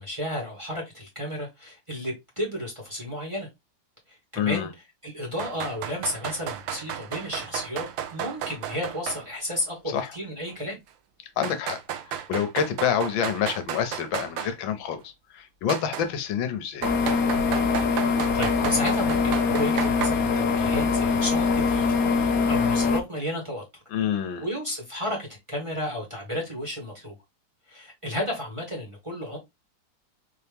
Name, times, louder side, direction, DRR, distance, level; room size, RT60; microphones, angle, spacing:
voice 1, 0.0-3.5 4.1-4.7 5.0-10.8 18.0-21.9 22.1-23.6 24.4-27.1 27.7-29.4, left 1 dB, 15° right, 1.4 m, -32 dB
voice 2, 4.4-4.7 9.9-10.1 11.4-11.8 12.1-16.9 23.9-24.4, left 8 dB, 80° left, 1.4 m, -27 dB
sound 1, 5.4-9.3 9.5-9.6 10.5-10.6 11.4-14.5 15.7-16.1 16.8-20.1, right 10 dB, 80° right, 1.4 m, -33 dB
sound 2, 16.8-23.0, left 4 dB, 60° left, 1.0 m, -23 dB
4.2 x 2.8 x 3.4 m
omnidirectional pair, 2.1 m